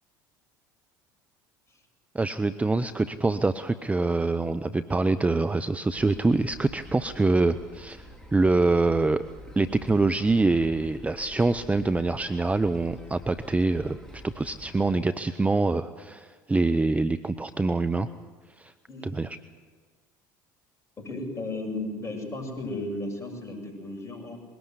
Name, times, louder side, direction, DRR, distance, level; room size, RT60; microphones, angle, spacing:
voice 1, 2.1-8.1 8.3-9.2 9.6-18.1 18.6-18.7 19.0-19.4, right 3 dB, 15° right, 11 dB, 0.7 m, -25 dB
sound 1, 6.0-15.0, left 1 dB, 5° left, 4.2 m, -47 dB
voice 2, 18.9-19.2 21.0-24.4, left 2 dB, 25° left, 2 dB, 8.0 m, -34 dB
22.0 x 18.5 x 8.2 m, 1.5 s
hypercardioid pair, 70°, 10 cm